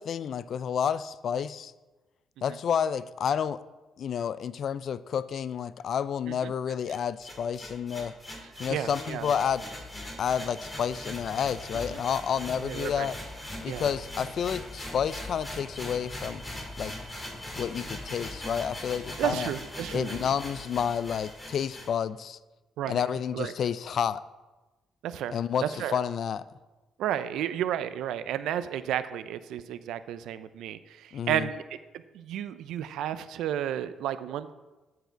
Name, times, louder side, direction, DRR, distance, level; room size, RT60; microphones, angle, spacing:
voice 1, 0.0-1.7 2.4-3.6 4.0-8.1 8.6-9.6 10.2-13.2 13.6-16.4 16.8-16.9 17.6-19.5 19.9-22.4 22.9-24.2 25.3-26.4 31.1-31.5, left 8 dB, 60° left, 17 dB, 0.3 m, -30 dB
sound 1, 6.9-21.9, left 1 dB, 15° left, 2.5 m, -40 dB
voice 2, 8.7-9.3 11.9-12.0 12.6-13.1 13.7-13.9 19.2-20.3 22.8-23.0 23.3-23.5 25.0-26.0 27.0-31.6 32.1-34.5, right 10 dB, 85° right, 13 dB, 0.4 m, -32 dB
13.0 x 4.8 x 4.5 m, 1.1 s
cardioid pair, 90°, 0 cm